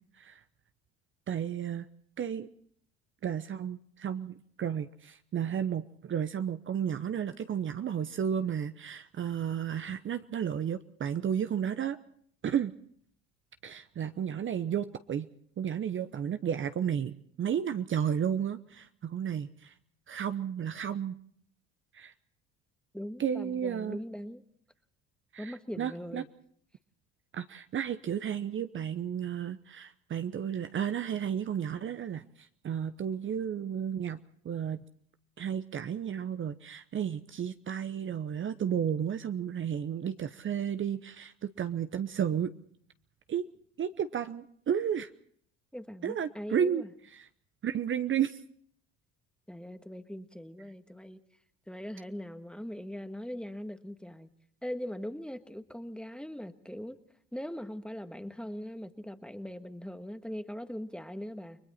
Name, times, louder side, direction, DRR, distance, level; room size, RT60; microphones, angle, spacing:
voice 1, 1.3-1.9 2.2-2.5 3.2-12.0 12.4-12.7 13.6-15.3 15.6-19.7 20.1-21.1 21.9-22.1 23.2-24.0 25.3-26.2 27.3-34.8 35.4-42.5 43.3-43.5 43.8-45.1 46.0-46.8 47.1-47.2 47.6-48.4, right 8 dB, 40° right, 10 dB, 0.9 m, -33 dB
voice 2, 22.9-24.4 25.4-26.3 45.7-46.9 49.5-51.2 51.7-54.3 54.6-57.0 57.3-61.6, equal, 5° left, 9 dB, 1.5 m, -41 dB
30.0 x 21.0 x 4.3 m, 0.63 s
supercardioid pair, 75°, 31 cm